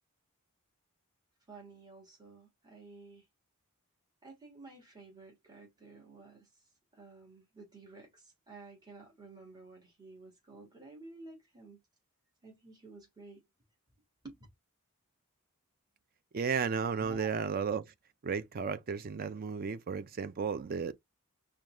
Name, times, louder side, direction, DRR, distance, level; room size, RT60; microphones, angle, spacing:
voice 1, 1.5-3.3 4.2-6.6 6.9-11.8 12.4-13.4 14.2-14.4 17.0-17.3, right 3 dB, 20° right, 1.4 m, -52 dB
voice 2, 16.3-17.9 18.2-20.9, right 5 dB, 40° right, 0.4 m, -33 dB
5.0 x 2.3 x 2.9 m
head